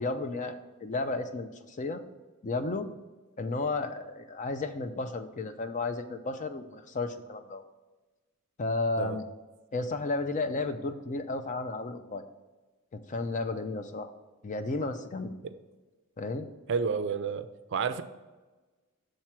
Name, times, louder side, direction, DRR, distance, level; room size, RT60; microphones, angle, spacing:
voice 1, 0.0-2.0 2.4-2.9 3.4-7.6 8.6-9.2 9.7-12.2 12.9-14.1 14.4-15.3 16.2-16.5, left 3 dB, 35° left, 0.5 m, -33 dB
voice 2, 16.7-18.0, right 5 dB, 55° right, 0.4 m, -30 dB
6.5 x 4.4 x 5.9 m
head